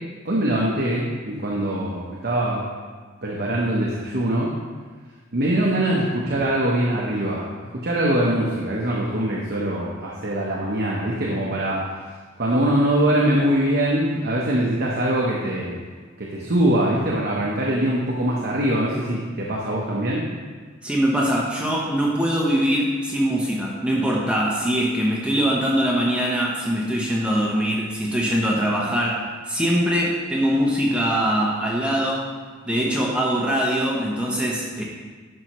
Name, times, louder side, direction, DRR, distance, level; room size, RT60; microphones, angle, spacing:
voice 1, 0.2-2.6 3.2-4.5 5.3-7.4 7.8-11.9 12.4-15.8 16.2-20.3, right 1 dB, 55° right, -3 dB, 0.9 m, -22 dB
voice 2, 20.8-32.3 32.7-34.8, equal, 5° right, -4 dB, 0.8 m, -22 dB
11.0 x 5.9 x 3.0 m, 1.5 s
head